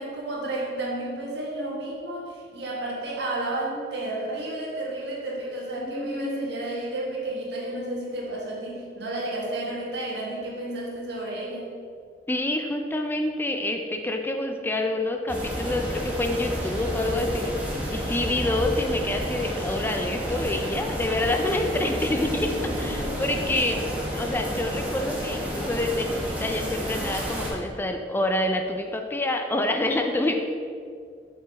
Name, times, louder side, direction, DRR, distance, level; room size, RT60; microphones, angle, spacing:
voice 1, 0.0-11.7 22.6-23.1 29.9-30.0, right 1 dB, 70° right, -3 dB, 1.5 m, -32 dB
voice 2, 5.8-6.4 12.3-23.8 24.1-30.4, left 2 dB, 10° left, 4 dB, 0.3 m, -27 dB
sound 1, 15.3-27.5, equal, 10° right, 1.2 m, -30 dB
6.2 x 5.0 x 4.0 m, 2.2 s
head